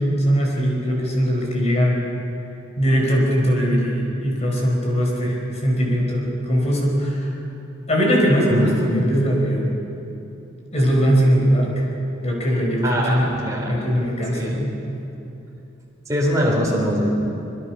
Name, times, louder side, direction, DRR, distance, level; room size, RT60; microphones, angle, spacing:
voice 1, 0.0-2.0 2.8-7.3 7.9-9.8 10.7-11.8 12.2-13.2 13.7-14.8 16.4-16.5, equal, 35° left, -1 dB, 4.9 m, -20 dB
voice 2, 8.5-9.0 12.8-13.9 14.3-14.7 16.1-17.1, equal, 15° right, -3 dB, 4.7 m, -23 dB
24.5 x 22.5 x 6.1 m, 2.8 s
head